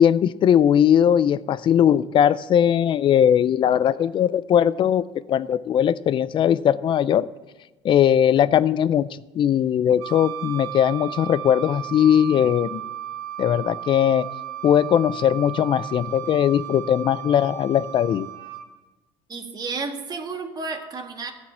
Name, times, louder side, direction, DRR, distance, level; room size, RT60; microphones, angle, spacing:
voice 1, 0.0-7.3 7.8-12.8 13.4-14.3 14.6-18.3, left 9 dB, 45° left, 17 dB, 0.5 m, -19 dB
Wind instrument woodwind instrument, 10.0-18.7, right 12 dB, 85° right, 1.2 m, -35 dB
voice 2, 19.3-21.3, right 4 dB, 35° right, 4 dB, 1.7 m, -31 dB
15.0 x 5.2 x 8.5 m, 1.1 s
supercardioid pair, 100°, 12 cm